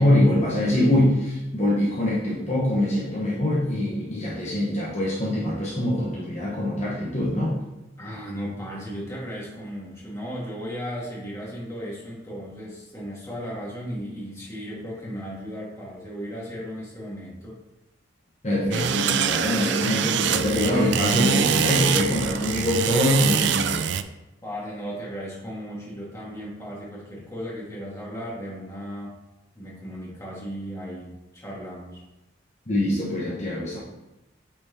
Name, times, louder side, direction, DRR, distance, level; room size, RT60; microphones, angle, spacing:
voice 1, 0.0-7.5 18.4-23.9 32.7-33.8, left 1 dB, 35° left, -7 dB, 1.1 m, -23 dB
voice 2, 8.0-17.6 24.4-29.2 29.5-32.0, equal, 15° left, -5 dB, 1.8 m, -36 dB
sound 1, 18.7-24.0, right 8 dB, 60° right, 0.3 m, -24 dB
8.8 x 4.4 x 2.8 m, 0.97 s
head